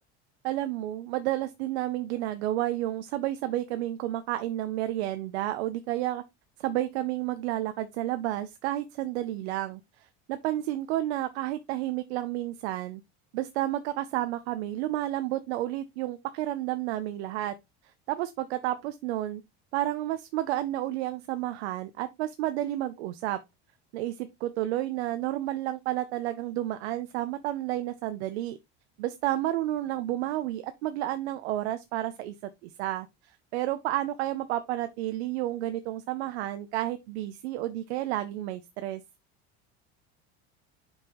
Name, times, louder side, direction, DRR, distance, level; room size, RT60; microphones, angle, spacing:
voice 1, 0.4-6.2 6.6-9.8 10.3-13.0 13.3-17.5 18.1-19.4 19.7-23.4 23.9-28.6 29.0-32.3 32.6-33.1 33.5-39.0, right 14 dB, 85° right, 0.7 m, -31 dB
6.6 x 5.5 x 3.0 m
supercardioid pair, 100°, 33 cm